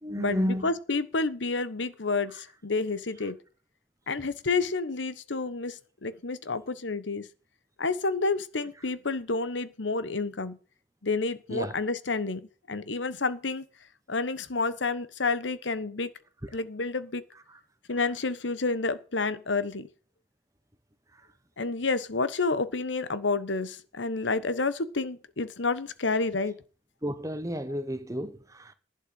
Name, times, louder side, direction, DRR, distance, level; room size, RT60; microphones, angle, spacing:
voice 1, 0.0-0.7 2.3-2.4 3.2-3.3 11.5-11.8 16.4-16.6 17.3-17.6 21.1-21.3 27.0-28.7, equal, 20° right, 1.3 m, -32 dB
voice 2, 0.6-3.4 4.1-7.3 7.8-10.6 11.0-13.6 14.1-16.1 16.5-17.2 17.9-19.9 21.6-26.6, left 3 dB, 90° left, 1.1 m, -29 dB
11.5 x 6.5 x 7.8 m
head